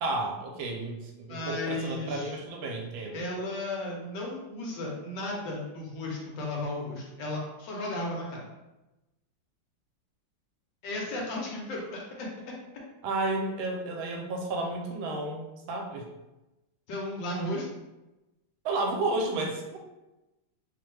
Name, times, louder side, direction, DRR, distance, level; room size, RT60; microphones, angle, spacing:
voice 1, 0.0-3.3 13.0-16.1 18.6-19.8, right 2 dB, 80° right, 1 dB, 1.3 m, -32 dB
voice 2, 1.3-2.3 3.1-8.4 10.8-12.3 16.9-17.7, left 1 dB, 70° left, -2 dB, 1.3 m, -34 dB
3.3 x 2.1 x 3.1 m, 1.0 s
omnidirectional pair, 2.2 m